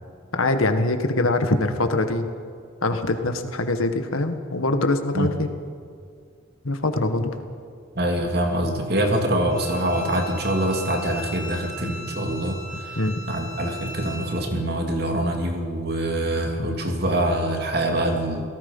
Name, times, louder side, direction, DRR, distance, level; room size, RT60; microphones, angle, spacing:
voice 1, 0.3-2.3 2.8-5.5 6.6-7.3 12.7-13.2, left 2 dB, 85° left, 7 dB, 1.8 m, -23 dB
voice 2, 7.9-13.0 13.3-18.5, right 1 dB, 50° right, 2 dB, 3.0 m, -24 dB
Bowed string instrument, 9.5-14.4, equal, 30° left, 3.9 m, -38 dB
29.0 x 18.0 x 5.6 m, 2.2 s
head